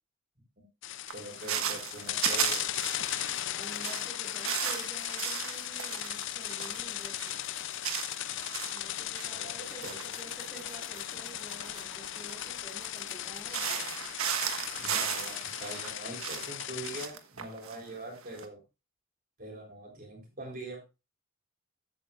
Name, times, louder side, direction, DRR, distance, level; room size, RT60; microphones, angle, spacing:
sound 1, 0.8-17.1, left 13 dB, 60° left, 0.5 m, -37 dB
voice 1, 1.1-2.6 9.3-9.9 14.8-18.6 19.4-20.8, right 1 dB, 45° right, 0 dB, 3.7 m, -43 dB
sound 2, 1.1-3.4 3.7-10.0 10.3-13.2 13.5-18.4, right 8 dB, 85° right, 1.3 m, -35 dB
sound 3, 2.1-16.0, right 3 dB, 20° right, 2.7 m, -56 dB
voice 2, 3.4-7.4 8.7-13.9, right 2 dB, 5° right, -4 dB, 2.8 m, -50 dB
14.0 x 8.5 x 2.4 m, 0.28 s
head